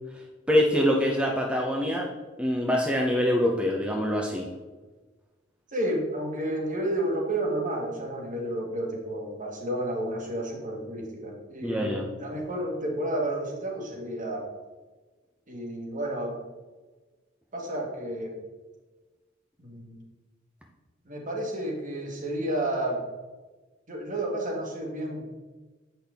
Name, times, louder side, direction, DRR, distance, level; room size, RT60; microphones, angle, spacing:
voice 1, 0.5-2.1 2.4-4.5 11.6-12.0, equal, 5° right, -1 dB, 0.7 m, -24 dB
voice 2, 5.7-14.5 15.5-16.4 17.5-18.4 19.6-20.0 21.0-23.0 23.9-25.3, right 1 dB, 45° right, 0 dB, 1.7 m, -31 dB
8.4 x 5.8 x 3.5 m, 1.3 s
head